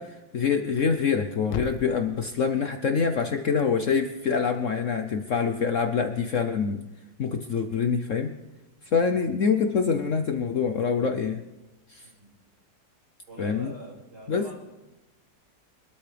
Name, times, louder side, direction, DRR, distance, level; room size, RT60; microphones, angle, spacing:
voice 1, 0.0-6.8 7.2-8.3 8.9-11.4 11.9-12.0 13.4-13.7 14.3-14.4, left 6 dB, 55° left, 6 dB, 0.9 m, -25 dB
Thump thud, 0.6-4.7, left 8 dB, 85° left, 1.5 m, -42 dB
voice 2, 13.3-14.7, right 1 dB, 65° right, -4 dB, 6.3 m, -44 dB
25.0 x 13.0 x 3.4 m, 1.1 s
omnidirectional pair, 1.9 m